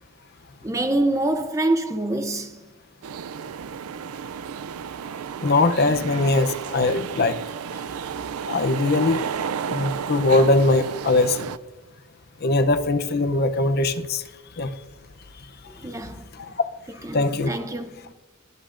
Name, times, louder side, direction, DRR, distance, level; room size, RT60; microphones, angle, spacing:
voice 1, 0.6-2.6 15.7-16.3 17.0-18.1, right 2 dB, 15° right, 0.6 m, -26 dB
sound 1, 3.0-11.6, right 7 dB, 80° right, 0.4 m, -32 dB
voice 2, 5.4-7.4 8.5-9.3 9.7-11.5 12.4-14.2 14.6-14.7 16.4-16.5 17.1-17.5, left 2 dB, 45° left, 0.7 m, -21 dB
22.5 x 8.5 x 2.5 m
head